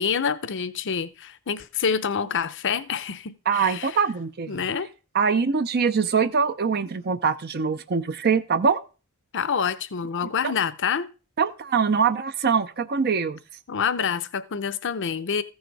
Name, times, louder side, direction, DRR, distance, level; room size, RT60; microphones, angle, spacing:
voice 1, 0.0-4.0 4.5-4.9 9.3-11.1 13.7-15.4, left 6 dB, 55° left, 0.7 m, -27 dB
voice 2, 3.5-4.6 5.1-8.8 10.4-10.5 11.4-13.4, right 5 dB, 45° right, 0.6 m, -23 dB
14.5 x 6.4 x 4.6 m
head